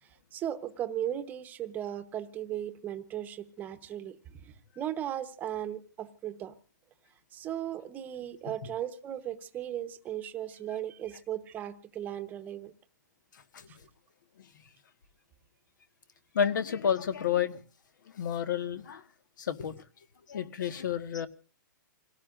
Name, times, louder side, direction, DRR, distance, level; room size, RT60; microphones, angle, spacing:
voice 1, 0.0-6.6 7.3-12.7 13.7-13.8, right 11 dB, 15° right, 1.0 m, -37 dB
voice 2, 13.3-13.9 14.4-14.5 16.3-17.6 18.1-19.0 19.4-19.8 20.3-21.3, left 8 dB, 70° left, 1.6 m, -31 dB
28.0 x 18.0 x 2.5 m
hypercardioid pair, 160°, 10 cm